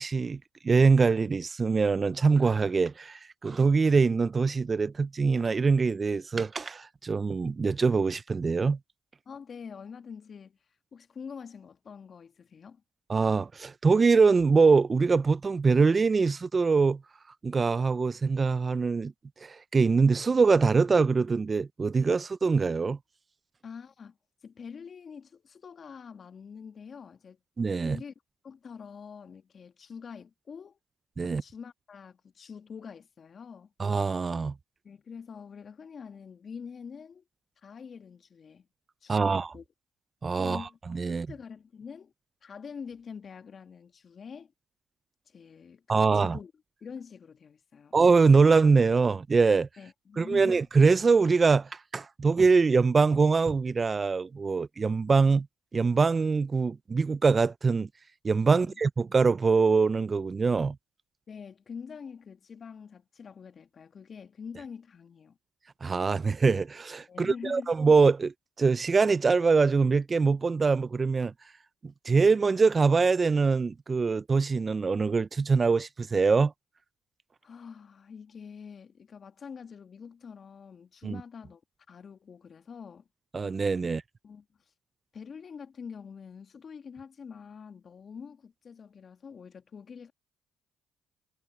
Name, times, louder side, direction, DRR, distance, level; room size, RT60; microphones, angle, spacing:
voice 1, 0.0-8.8 13.1-17.0 17.4-19.1 19.4-23.0 27.6-28.0 31.2-31.4 33.8-34.5 39.1-39.5 40.2-41.3 45.9-46.4 47.9-49.7 50.2-55.5 55.7-57.9 58.2-60.8 65.8-71.3 72.0-76.5 81.0-81.2 83.3-84.0, right 4 dB, 35° right, 0.5 m, -23 dB
voice 2, 9.3-10.6 10.9-12.8 23.6-24.2 24.4-27.4 27.8-28.1 28.4-30.8 31.2-33.7 34.8-37.2 37.6-38.7 39.0-39.6 40.4-40.8 41.1-42.1 42.4-44.5 45.3-46.5 46.8-48.0 49.8-50.6 58.5-58.8 61.3-65.4 67.1-67.8 77.4-81.6 81.9-83.1 84.2-84.5 85.1-90.1, left 6 dB, 50° left, 1.9 m, -45 dB
supercardioid pair, 60°, 0 cm